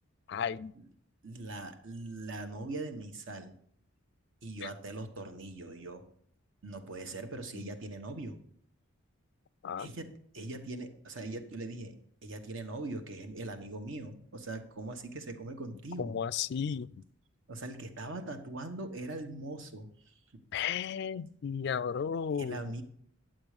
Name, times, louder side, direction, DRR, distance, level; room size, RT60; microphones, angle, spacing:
voice 1, 0.3-0.7 4.6-4.7 7.5-7.7 9.6-9.9 16.0-16.9 20.5-22.7, left 7 dB, 50° left, 0.3 m, -34 dB
voice 2, 1.2-3.5 4.4-6.0 6.6-8.4 9.8-10.1 10.3-11.9 12.2-16.2 17.5-20.1 22.4-22.8, right 2 dB, 60° right, 1.1 m, -41 dB
10.5 x 7.5 x 4.9 m
head